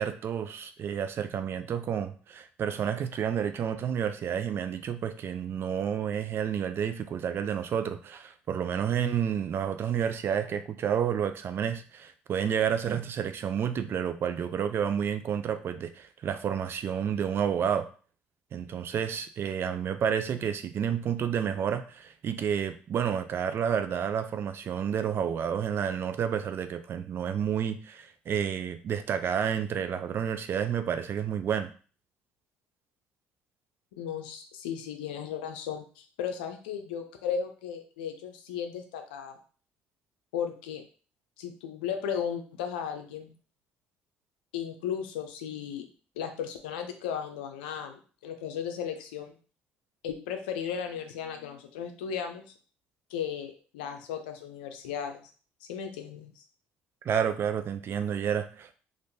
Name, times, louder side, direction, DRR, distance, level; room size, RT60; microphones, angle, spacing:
voice 1, 0.0-17.9 18.5-31.7 57.0-58.7, right 8 dB, 50° right, 10 dB, 0.4 m, -30 dB
voice 2, 34.0-39.4 40.3-40.8 41.4-43.3 44.5-45.9 46.2-49.4 50.0-52.5 53.1-55.3 55.6-56.4, left 8 dB, 90° left, 6 dB, 0.5 m, -35 dB
3.5 x 2.5 x 2.6 m, 0.39 s
supercardioid pair, 70°, 5 cm